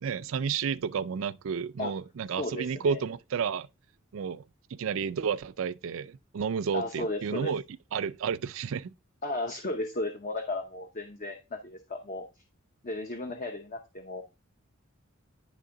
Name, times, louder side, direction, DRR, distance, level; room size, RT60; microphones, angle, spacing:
voice 1, 0.0-3.7 4.1-4.4 4.7-7.6 7.9-8.9, right 6 dB, 70° right, 0.4 m, -31 dB
voice 2, 2.4-3.0 6.7-7.5 9.2-12.2 12.8-14.2, left 2 dB, 40° left, 0.8 m, -34 dB
10.0 x 3.5 x 3.8 m
head